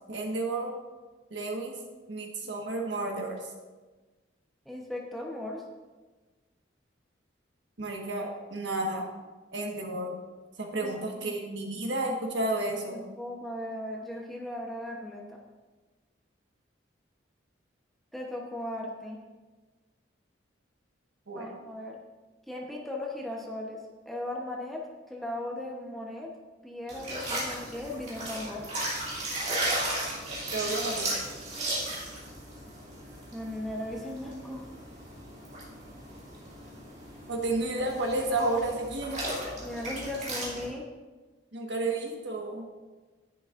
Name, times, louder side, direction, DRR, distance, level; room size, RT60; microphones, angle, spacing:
voice 1, 0.1-0.7 1.3-1.8 2.1-3.5 7.8-9.1 9.5-10.1 10.6-13.0 21.3-21.5 30.5-31.1 37.3-39.2 41.5-42.7, right 2 dB, 65° right, 1 dB, 1.5 m, -31 dB
voice 2, 4.7-5.6 10.8-11.3 12.9-15.4 18.1-19.2 21.3-22.0 22.5-26.3 26.6-28.7 33.3-34.7 39.6-40.9, left 1 dB, ahead, -2 dB, 1.0 m, -37 dB
sound 1, 26.9-40.7, right 1 dB, 35° right, 2.7 m, -36 dB
10.5 x 10.5 x 2.6 m, 1.3 s
head